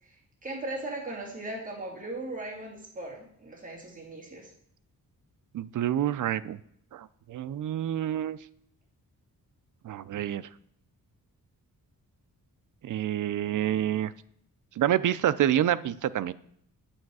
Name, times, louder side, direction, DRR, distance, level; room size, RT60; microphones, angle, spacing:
voice 1, 0.0-4.5, right 2 dB, 20° right, -3 dB, 2.2 m, -38 dB
voice 2, 5.5-6.6 6.9-8.4 9.8-10.4 12.8-14.1 14.8-16.3, right 11 dB, 55° right, 15 dB, 0.4 m, -27 dB
9.0 x 8.5 x 4.7 m, 0.68 s
wide cardioid pair, 170°, 36 cm